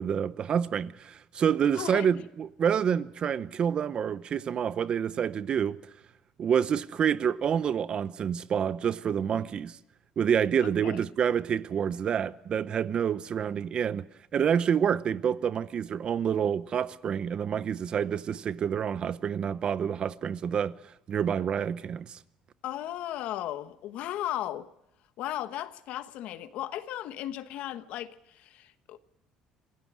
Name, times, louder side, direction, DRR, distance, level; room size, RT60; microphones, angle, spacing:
voice 1, 0.0-5.8 6.4-9.8 10.2-14.1 14.3-20.8 21.1-22.2, right 8 dB, 40° right, 0.7 m, -28 dB
voice 2, 1.7-2.1 10.6-11.0 22.6-24.7 25.2-29.0, left 12 dB, 65° left, 1.2 m, -36 dB
26.5 x 16.0 x 6.2 m
cardioid pair, 125°, 2 cm